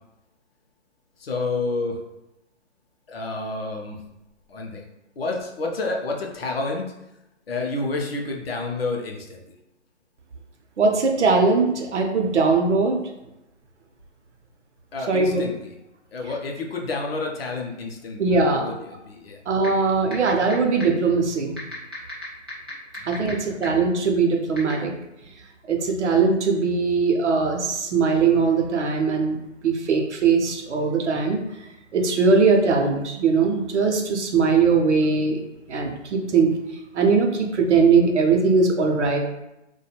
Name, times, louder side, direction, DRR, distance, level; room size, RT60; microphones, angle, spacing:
voice 1, 1.2-2.0 3.1-4.0 4.5-4.8 5.2-6.9 7.5-9.4 14.9-15.7 16.1-19.4 23.0-23.6, left 3 dB, 55° left, 0 dB, 0.5 m, -29 dB
voice 2, 10.8-13.0 15.1-15.4 18.2-18.7 19.5-21.6 23.0-24.9 25.7-31.4 31.9-35.4 35.7-36.5 36.9-39.2, right 4 dB, 70° right, 2 dB, 0.6 m, -20 dB
sound 1, 19.6-19.7 20.1-20.5 20.8-20.9 21.6-23.3 23.6-23.7 24.6-24.7, left 1 dB, 20° right, 0.4 m, -35 dB
2.3 x 2.2 x 2.9 m, 0.91 s
hypercardioid pair, 160°, 37 cm